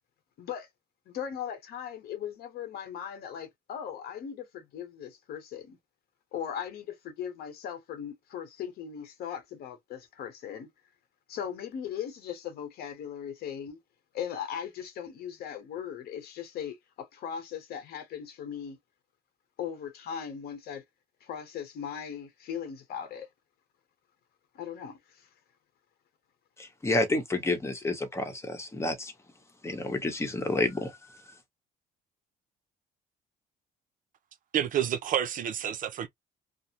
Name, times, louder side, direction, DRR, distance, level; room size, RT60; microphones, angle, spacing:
voice 1, 0.4-0.7 1.1-5.8 6.3-10.7 11.3-13.8 14.1-18.8 19.6-20.8 21.2-23.3 24.5-25.3, left 8 dB, 70° left, 1.0 m, -38 dB
voice 2, 26.6-29.1 29.6-31.2, left 2 dB, 15° left, 0.9 m, -30 dB
voice 3, 34.5-36.1, right 10 dB, 55° right, 0.5 m, -29 dB
2.6 x 2.1 x 2.8 m
cardioid pair, 110°, 17 cm